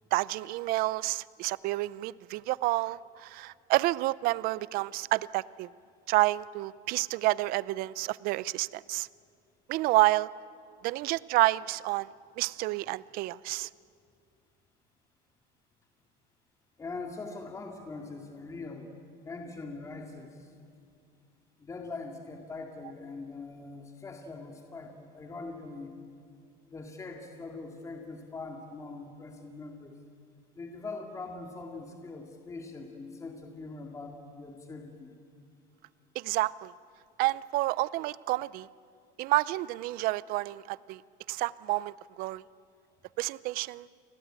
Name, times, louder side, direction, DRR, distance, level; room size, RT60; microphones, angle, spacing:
voice 1, 0.1-5.7 6.1-9.1 9.7-10.3 10.8-12.1 12.4-13.7 36.1-36.7 37.2-38.7 39.2-41.0 41.3-42.4 43.2-43.9, right 18 dB, 55° right, 20 dB, 0.6 m, -29 dB
voice 2, 16.8-18.9 19.2-20.5 21.6-25.9 26.7-30.0 30.5-35.1, left 3 dB, 15° left, 3 dB, 2.3 m, -42 dB
29.5 x 21.0 x 9.0 m, 2.3 s
cardioid pair, 145°, 18 cm